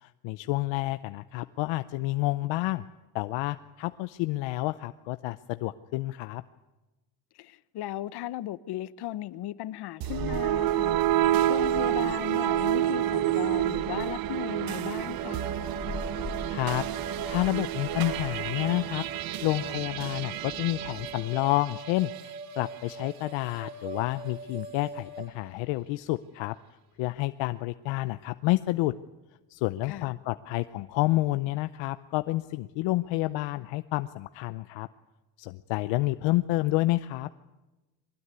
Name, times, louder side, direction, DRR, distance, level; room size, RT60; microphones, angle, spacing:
voice 1, 0.0-2.9 3.1-6.4 16.5-19.0 19.4-26.6 27.0-29.0 29.5-34.9 35.4-37.3, left 19 dB, 90° left, 0.7 m, -29 dB
voice 2, 7.3-11.0 11.5-15.4 29.8-30.1, left 14 dB, 65° left, 1.0 m, -37 dB
sound 1, 10.0-18.4, left 2 dB, 10° left, 5.8 m, -44 dB
sound 2, 10.0-22.3, right 13 dB, 55° right, 0.8 m, -29 dB
sound 3, 15.2-25.3, right 2 dB, 20° right, 6.4 m, -42 dB
22.5 x 19.5 x 9.8 m
cardioid pair, 130°, 43 cm